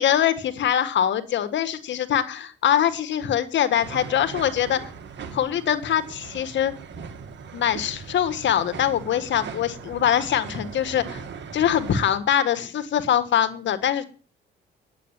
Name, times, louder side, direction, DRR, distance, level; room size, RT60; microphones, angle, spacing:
voice 1, 0.0-4.8 5.3-6.7 7.5-11.2 11.5-14.0, left 10 dB, 70° left, 11 dB, 1.6 m, -23 dB
sound 1, 3.8-12.2, right 6 dB, 65° right, 2.1 m, -39 dB
10.5 x 8.5 x 8.9 m, 0.38 s
cardioid pair, 90°, 20 cm